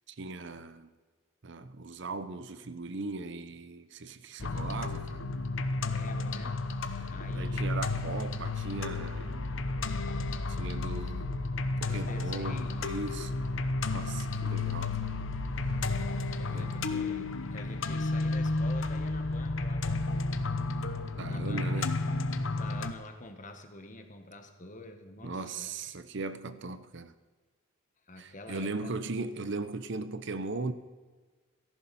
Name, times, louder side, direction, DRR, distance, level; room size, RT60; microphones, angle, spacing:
voice 1, 0.1-0.9 1.4-5.3 7.0-9.5 10.5-11.5 11.8-13.3 13.9-15.1 16.5-16.8 21.2-22.0 25.2-27.1 28.2-30.7, right 3 dB, 60° right, 0.8 m, -38 dB
sound 1, 4.4-22.9, left 3 dB, 70° left, 0.9 m, -32 dB
voice 2, 5.8-7.8 11.8-13.0 16.1-20.2 21.3-21.8 22.5-25.7 28.1-29.0, left 2 dB, 40° left, 1.5 m, -47 dB
17.0 x 14.5 x 4.3 m
head